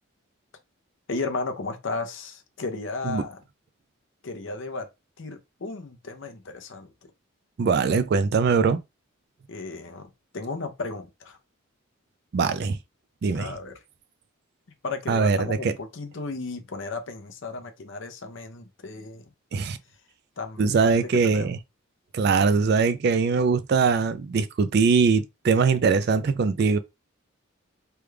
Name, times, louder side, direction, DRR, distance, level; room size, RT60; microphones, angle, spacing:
voice 1, 1.1-3.4 4.2-4.9 5.2-7.1 9.5-11.4 13.3-13.8 14.8-19.2 20.4-21.5, left 3 dB, 60° left, 0.7 m, -34 dB
voice 2, 7.6-8.8 12.3-12.8 13.2-13.5 15.1-15.7 19.5-19.8 20.6-21.6 22.1-26.8, right 5 dB, 50° right, 0.3 m, -22 dB
3.4 x 2.3 x 3.2 m
head